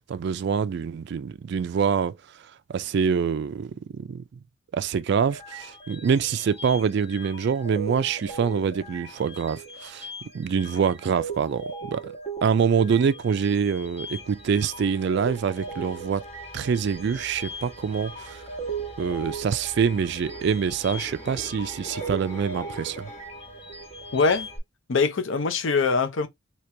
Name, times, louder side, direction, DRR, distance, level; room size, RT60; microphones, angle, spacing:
voice 1, 0.1-2.2 2.7-4.2 4.7-10.1 10.3-12.1 12.4-16.2 16.5-18.4 19.0-23.1, right 6 dB, 60° right, 0.3 m, -25 dB
sound 1, 5.2-24.6, right 3 dB, 30° left, 1.3 m, -38 dB
sound 2, 20.1-23.5 23.9-24.2, left 1 dB, 10° left, 0.8 m, -44 dB
voice 2, 24.1-24.5 24.9-26.3, left 4 dB, 70° left, 0.6 m, -23 dB
2.9 x 2.9 x 3.2 m
head